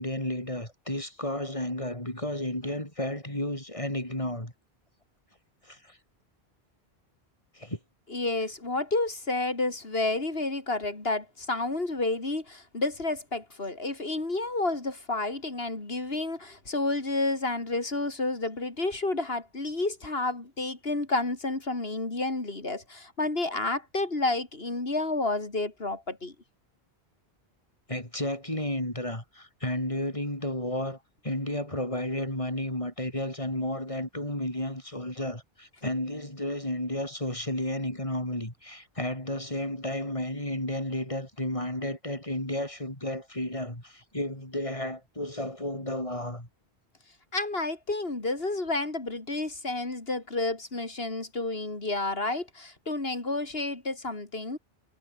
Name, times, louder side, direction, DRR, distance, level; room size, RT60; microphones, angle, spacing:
voice 1, 0.0-4.5 5.7-6.0 7.5-7.8 27.9-31.0 31.2-46.5, left 1 dB, 30° left, 6.2 m, -32 dB
voice 2, 8.1-26.3 47.3-54.6, left 2 dB, 70° left, 4.0 m, -30 dB
omnidirectional pair, 1.1 m